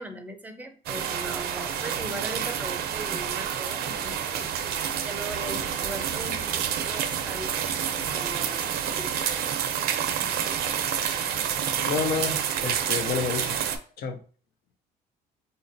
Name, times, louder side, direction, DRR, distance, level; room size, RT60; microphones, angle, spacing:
voice 1, 0.0-4.5 5.0-9.2, right 1 dB, 10° right, 6 dB, 0.5 m, -39 dB
sound 1, 0.9-13.8, right 8 dB, 65° right, 0.5 m, -29 dB
voice 2, 11.9-13.6 14.0-14.2, left 5 dB, 65° left, 7 dB, 0.6 m, -29 dB
4.1 x 2.6 x 2.6 m, 0.41 s
cardioid pair, 110°, 17 cm